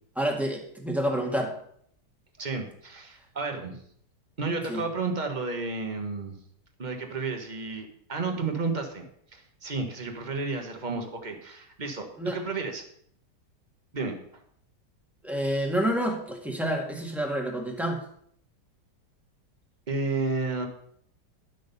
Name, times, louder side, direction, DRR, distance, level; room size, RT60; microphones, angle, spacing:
voice 1, 0.1-1.5 4.7-4.8 12.2-12.4 15.2-18.0, right 1 dB, ahead, 0 dB, 1.6 m, -28 dB
voice 2, 2.4-3.8 4.4-6.3 6.8-9.0 9.3-12.8 13.9-14.1 19.9-20.7, right 3 dB, 30° right, 4 dB, 1.3 m, -32 dB
10.5 x 6.3 x 5.4 m, 0.65 s
omnidirectional pair, 1.9 m